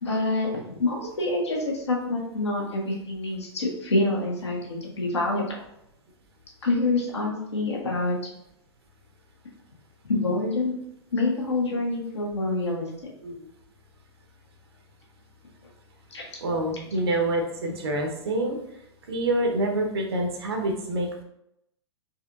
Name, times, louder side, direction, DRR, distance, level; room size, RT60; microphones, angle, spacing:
voice 1, 0.0-0.5 0.8-5.6 6.6-8.2 10.1-10.8 11.1-12.9 16.1-16.2, left 2 dB, 70° left, -2 dB, 1.3 m, -26 dB
voice 2, 16.4-18.6 19.1-21.2, right 1 dB, 60° right, 2 dB, 1.0 m, -27 dB
4.3 x 3.4 x 2.5 m, 0.79 s
figure-of-eight pair, 105°, 15 cm